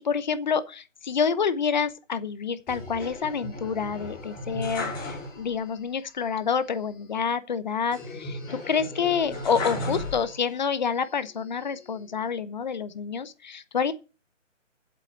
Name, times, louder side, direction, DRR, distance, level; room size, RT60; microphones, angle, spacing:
voice 1, 0.0-13.9, left 6 dB, 35° left, 0.9 m, -28 dB
sound 1, 2.7-5.7 6.0-6.1 7.9-10.7 11.2-12.0, left 1 dB, 10° left, 4.4 m, -36 dB
8.1 x 7.9 x 6.4 m
hypercardioid pair, 160°, 38 cm